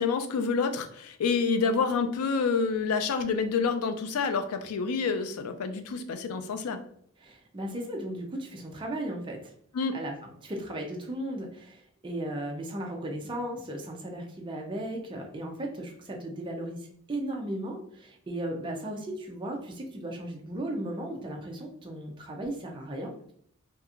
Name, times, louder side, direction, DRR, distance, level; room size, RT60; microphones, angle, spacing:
voice 1, 0.0-6.8 9.7-10.0, left 5 dB, 90° left, 8 dB, 0.4 m, -28 dB
voice 2, 7.2-9.5 9.9-23.3, right 1 dB, 20° right, 1 dB, 0.4 m, -36 dB
2.8 x 2.4 x 2.4 m, 0.64 s
head